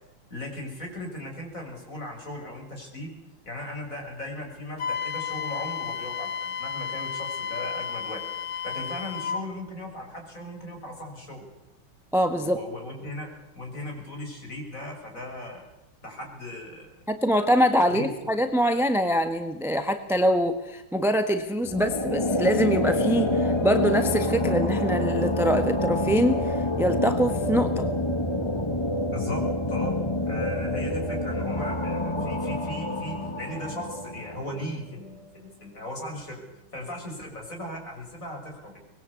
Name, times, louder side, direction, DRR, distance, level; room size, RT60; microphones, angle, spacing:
voice 1, 0.3-3.1 3.5-11.5 12.3-13.3 13.5-15.6 16.0-16.9 17.9-18.3 29.1-30.0 30.3-36.4 36.7-38.8, left 1 dB, 40° left, 2 dB, 6.8 m, -37 dB
Wind instrument woodwind instrument, 4.8-9.4, left 7 dB, 80° left, 2.5 m, -32 dB
voice 2, 12.1-12.6 17.1-27.9, equal, ahead, 8 dB, 1.1 m, -24 dB
sound 1, 21.6-34.8, left 1 dB, 15° left, 1.6 m, -27 dB
24.0 x 21.0 x 8.4 m, 0.91 s
omnidirectional pair, 2.2 m